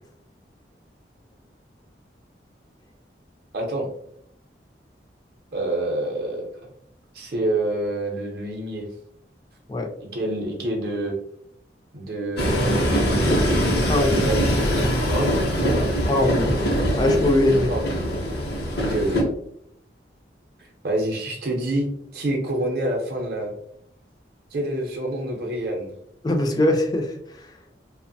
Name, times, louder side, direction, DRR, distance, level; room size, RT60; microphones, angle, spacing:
voice 1, 3.5-3.9 5.5-6.5 7.1-8.9 10.0-11.2 11.9-13.3 13.6-13.7 14.1-14.6 15.1-16.0 17.5-17.9 18.8-19.2 20.8-23.5 24.5-25.9, right 1 dB, 55° right, -1 dB, 0.5 m, -27 dB
Train, 12.4-19.2, equal, 65° left, 0.6 m, -22 dB
voice 2, 13.7-14.2 16.1-16.5 17.0-17.7 26.2-27.1, left 1 dB, 20° left, 3 dB, 0.3 m, -21 dB
2.8 x 2.0 x 2.6 m, 0.70 s
head